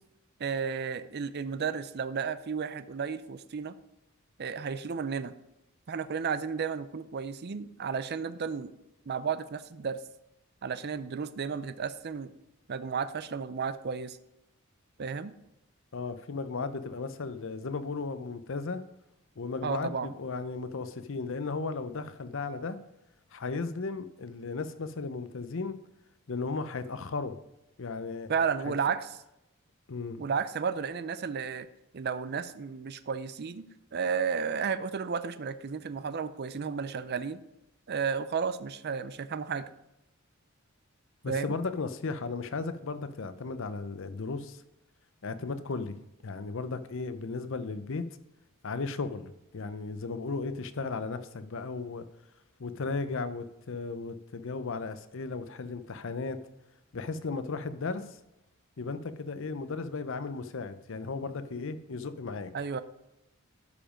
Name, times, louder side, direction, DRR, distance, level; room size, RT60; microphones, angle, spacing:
voice 1, 0.4-3.7 4.4-5.3 5.9-8.7 9.1-10.0 10.6-12.3 12.7-14.2 15.0-15.3 19.6-20.1 28.3-29.1 30.2-31.7 31.9-37.4 37.9-39.6 41.3-41.5 62.5-62.8, right 6 dB, 50° right, 13 dB, 0.5 m, -33 dB
voice 2, 15.9-18.8 19.4-22.8 23.3-25.8 26.3-27.4 27.8-28.3 29.9-30.2 41.2-44.6 45.2-46.0 46.2-48.1 48.6-52.0 52.6-56.4 56.9-58.2 58.8-62.5, left 4 dB, 65° left, 12 dB, 0.7 m, -35 dB
12.0 x 5.1 x 5.1 m, 0.89 s
head